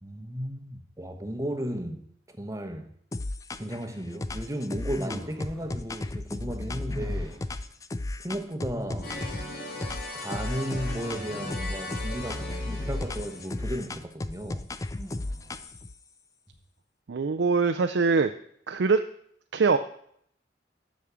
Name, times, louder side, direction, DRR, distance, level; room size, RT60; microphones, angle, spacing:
voice 1, 0.0-2.9 3.6-7.4 8.2-9.2 10.1-14.7, equal, 15° right, 0.9 m, -35 dB
sound 1, 3.1-3.8 4.2-9.5 9.8-11.2 11.5-15.9, left 2 dB, 20° left, 0.4 m, -34 dB
sound 2, 4.8-5.8 6.9-7.6 8.7-9.6 10.7-11.7 12.8-13.4 14.9-15.7, equal, ahead, 1.7 m, -41 dB
sound 3, 9.0-13.9, left 1 dB, 55° left, 1.9 m, -39 dB
voice 2, 17.1-18.3 18.7-19.0 19.5-19.8, right 4 dB, 70° right, 0.5 m, -23 dB
8.6 x 6.3 x 6.9 m
head